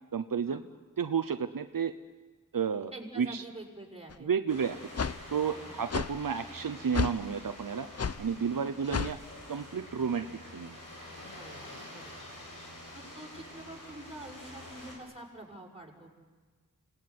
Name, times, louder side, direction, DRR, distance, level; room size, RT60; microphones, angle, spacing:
voice 1, 0.1-0.6 1.0-1.9 2.5-3.4 4.2-4.8 5.3-7.9 8.2-9.2 9.5-10.8, right 6 dB, 80° right, 8 dB, 0.9 m, -31 dB
voice 2, 2.9-4.3 5.5-5.7 8.5-8.7 11.3-11.6 11.9-12.1 12.9-16.1, right 1 dB, 20° right, 0 dB, 5.8 m, -46 dB
sound 1, 4.1-4.2 5.0-5.2 5.9-6.1 6.9-7.2 8.0-8.2 8.9-9.2, left 6 dB, 50° left, 0.7 m, -31 dB
sound 2, 4.5-14.9, left 1 dB, 70° left, 7.4 m, -47 dB
27.5 x 18.5 x 9.7 m, 1.4 s
wide cardioid pair, 55°, 33 cm